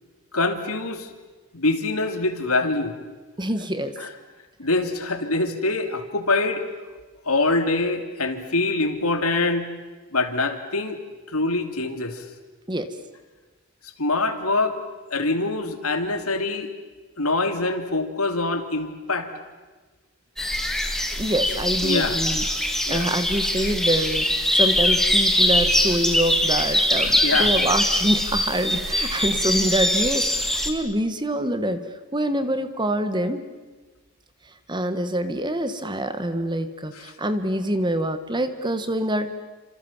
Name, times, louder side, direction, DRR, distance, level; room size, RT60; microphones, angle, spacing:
voice 1, 0.3-1.1 1.5-2.9 4.0-4.1 4.6-6.7 7.3-9.7 10.1-11.0 11.3-12.3 14.0-14.8 15.1-16.7 17.2-19.3 21.8-22.2 22.9-23.1 27.0-27.5 36.9-37.1, left 2 dB, 80° left, 7 dB, 3.0 m, -24 dB
voice 2, 3.4-4.0 12.7-12.9 21.2-31.8 32.1-33.4 34.7-39.3, right 1 dB, 20° right, 10 dB, 1.7 m, -25 dB
sound 1, 20.4-30.7, left 1 dB, ahead, 2.3 m, -22 dB
30.0 x 27.0 x 7.5 m, 1.3 s
head